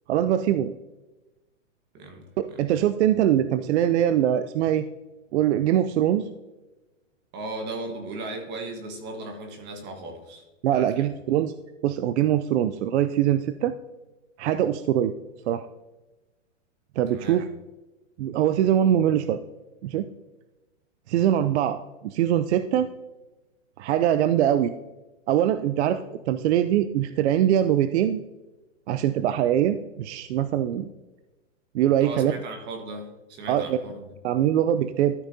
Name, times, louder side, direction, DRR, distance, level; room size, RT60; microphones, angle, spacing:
voice 1, 0.1-0.7 2.4-4.8 5.3-6.3 10.6-11.5 11.8-13.7 14.4-15.1 15.5-15.7 17.0-17.4 18.2-19.4 19.8-20.1 21.1-22.9 23.8-24.7 25.3-26.0 26.3-28.2 28.9-30.9 31.7-32.3 33.5-33.8 34.2-35.1, right 11 dB, 60° right, 11 dB, 0.5 m, -22 dB
voice 2, 7.3-10.4 10.7-11.1 17.1-17.4 32.0-34.1, right 2 dB, 25° right, 4 dB, 1.4 m, -37 dB
13.5 x 5.9 x 2.7 m, 1.1 s
hypercardioid pair, 145°, 38 cm